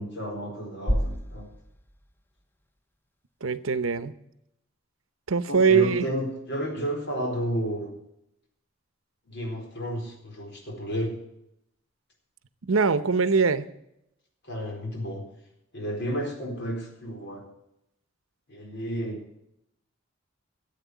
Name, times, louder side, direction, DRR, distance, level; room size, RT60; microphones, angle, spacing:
voice 1, 0.0-1.5 5.5-7.9 9.3-11.2 14.5-15.3 15.7-17.5 18.5-19.2, equal, 60° left, 4.2 m, -32 dB
sound 1, 0.9-3.0, equal, 10° left, 0.5 m, -31 dB
voice 2, 3.4-4.1 5.3-6.1 12.7-13.7, right 5 dB, 70° right, 0.8 m, -22 dB
14.0 x 8.3 x 8.2 m
head